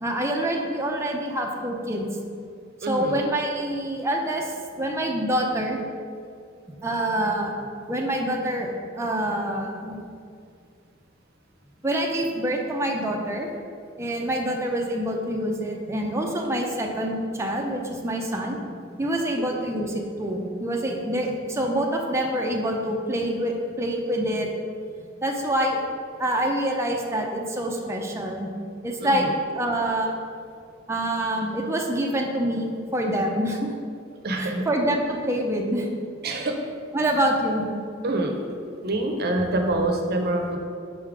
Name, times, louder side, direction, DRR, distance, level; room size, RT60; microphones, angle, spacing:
voice 1, 0.0-2.0 2.9-5.8 6.8-7.5 7.9-10.0 11.8-13.5 14.0-24.5 25.2-25.8 26.2-28.5 28.8-29.3 29.5-30.1 30.9-33.7 34.4-35.9 36.9-37.6, right 1 dB, 15° right, 0 dB, 0.5 m, -26 dB
voice 2, 2.8-3.2 19.6-19.7 29.0-29.3 34.2-34.6 36.2-36.6 38.0-38.3 38.8-40.6, right 2 dB, 55° right, 3 dB, 0.7 m, -26 dB
5.4 x 3.7 x 4.9 m, 2.3 s
head